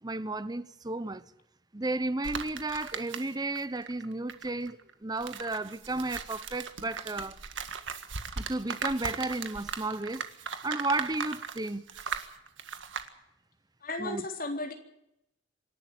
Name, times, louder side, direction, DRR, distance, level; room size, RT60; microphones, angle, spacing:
voice 1, 0.0-1.2 1.7-7.4 8.4-10.3 10.6-12.0 14.0-14.2, right 2 dB, 20° right, 0.9 m, -33 dB
sound 1, 2.2-3.6 3.9-13.1, right 5 dB, 90° right, 1.8 m, -38 dB
voice 2, 13.8-14.7, left 2 dB, 50° left, 3.7 m, -34 dB
26.0 x 12.0 x 9.3 m
head